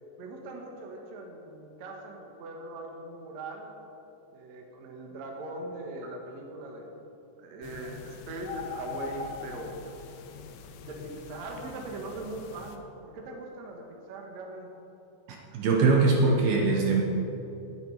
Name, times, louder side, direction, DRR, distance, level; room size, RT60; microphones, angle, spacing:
voice 1, 0.2-3.7 4.3-7.0 7.4-10.0 10.8-14.7, right 2 dB, 55° right, 1 dB, 2.2 m, -40 dB
sound 1, 7.6-12.8, left 6 dB, 85° left, 3.1 m, -42 dB
voice 2, 15.5-17.0, right 3 dB, 70° right, 0 dB, 2.7 m, -22 dB
19.0 x 9.3 x 4.8 m, 3.0 s
omnidirectional pair, 4.9 m